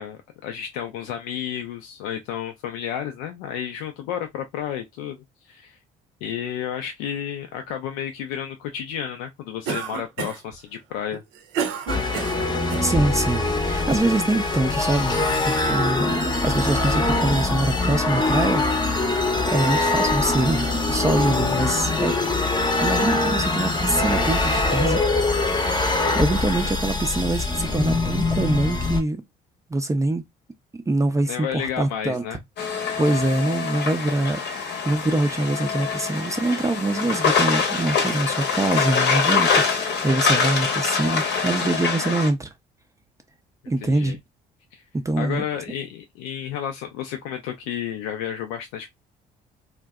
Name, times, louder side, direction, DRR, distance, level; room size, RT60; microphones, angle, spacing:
voice 1, 0.0-5.8 6.2-11.2 31.3-32.4 43.8-44.2 44.7-44.8 45.2-48.9, left 9 dB, 75° left, 0.4 m, -31 dB
Cough, 9.7-10.5 11.1-12.9, right 6 dB, 75° right, 0.7 m, -30 dB
sound 1, 11.9-29.0, left 2 dB, 20° left, 0.7 m, -23 dB
voice 2, 12.8-15.2 15.4-22.2 22.8-25.0 26.1-29.2 29.7-30.2 30.7-32.2 33.0-34.4 34.9-42.5 43.7-44.2 44.9-45.4, right 2 dB, 15° right, 0.4 m, -24 dB
sound 2, 32.6-42.3, left 5 dB, 60° left, 0.8 m, -24 dB
2.5 x 2.1 x 2.3 m
hypercardioid pair, 55°, 20 cm